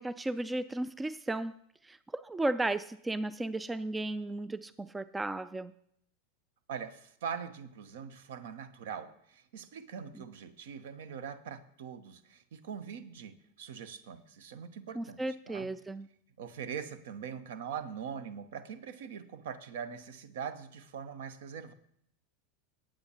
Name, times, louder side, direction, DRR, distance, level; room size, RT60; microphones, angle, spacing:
voice 1, 0.0-1.5 1.9-5.7 15.0-16.1, right 2 dB, 10° right, 0.3 m, -34 dB
voice 2, 6.7-15.2 15.5-15.7 16.4-21.7, right 7 dB, 60° right, 0.9 m, -42 dB
19.5 x 8.8 x 2.9 m
figure-of-eight pair, 85°, 0 cm